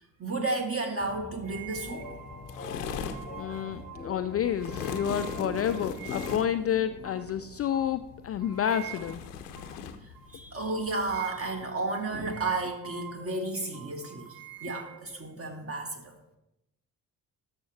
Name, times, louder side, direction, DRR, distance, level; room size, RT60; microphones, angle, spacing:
voice 1, 0.2-2.1 10.3-16.1, right 3 dB, 30° right, 4 dB, 1.8 m, -32 dB
sound 1, 1.0-8.5, left 2 dB, 20° left, 1.2 m, -45 dB
sound 2, 1.4-6.6 7.0-7.2 7.7-7.9 8.4-9.3 9.6-9.8 10.1-10.3 10.8-13.4 13.7-15.6, right 10 dB, 65° right, 0.9 m, -46 dB
sound 3, 1.6-11.1, left 7 dB, 85° left, 0.7 m, -40 dB
voice 2, 3.4-9.2, left 9 dB, 35° left, 10 dB, 0.4 m, -29 dB
13.0 x 6.1 x 3.3 m, 0.87 s
figure-of-eight pair, 45°, 46 cm